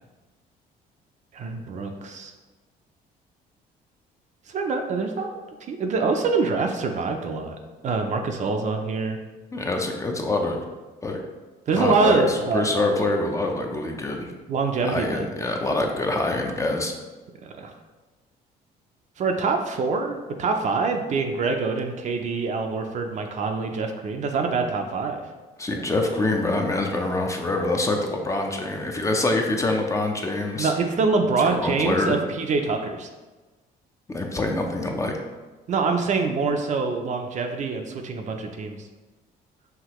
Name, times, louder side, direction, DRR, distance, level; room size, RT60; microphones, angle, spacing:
voice 1, 1.3-2.3 4.5-5.4 5.7-7.6 7.8-9.2 11.7-12.9 14.5-15.3 17.4-17.7 19.2-25.2 25.7-25.8 30.6-33.1 35.7-38.8, right 4 dB, 45° right, 4 dB, 0.5 m, -25 dB
voice 2, 9.5-10.6 11.0-11.2 11.7-14.3 14.8-16.9 25.6-30.7 31.4-32.2 34.1-35.1, left 2 dB, 20° left, 2 dB, 0.5 m, -25 dB
5.7 x 2.8 x 3.0 m, 1.2 s
cardioid pair, 110°, 17 cm